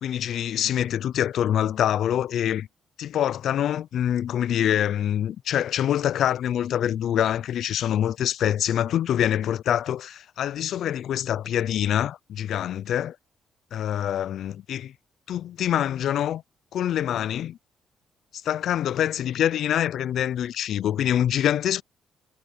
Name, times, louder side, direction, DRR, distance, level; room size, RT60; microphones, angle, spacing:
voice 1, 0.0-2.7 3.0-13.2 13.7-14.9 15.3-16.4 16.7-17.6 18.3-21.8, left 10 dB, 70° left, 0.4 m, -25 dB
cardioid pair, 90°, 0 cm